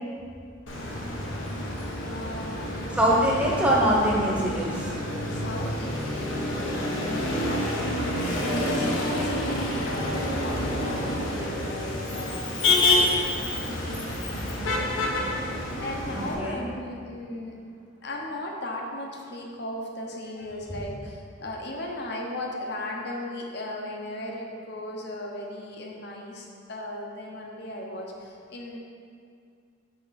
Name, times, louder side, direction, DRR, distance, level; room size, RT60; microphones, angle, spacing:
Motor vehicle (road), 0.7-16.3, left 1 dB, 85° left, 1.0 m, -28 dB
voice 1, 2.0-3.2 5.3-12.4 13.3-14.9 15.8-17.6 18.0-28.8, left 1 dB, 60° left, 0 dB, 0.9 m, -37 dB
voice 2, 2.9-4.9 16.1-16.6, equal, 5° right, -4 dB, 0.9 m, -23 dB
6.0 x 5.4 x 4.0 m, 2.3 s
head